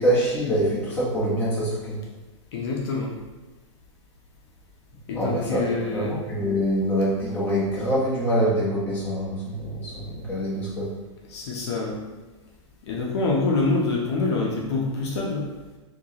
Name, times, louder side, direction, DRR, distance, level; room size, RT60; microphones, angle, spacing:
voice 1, 0.0-2.0 5.1-10.9, equal, 10° left, -8 dB, 1.0 m, -25 dB
voice 2, 2.5-3.1 5.1-6.1 11.3-12.0 12.8-15.5, left 3 dB, 55° left, -2 dB, 0.7 m, -26 dB
4.6 x 2.3 x 2.9 m, 1.2 s
hypercardioid pair, 150°, 16 cm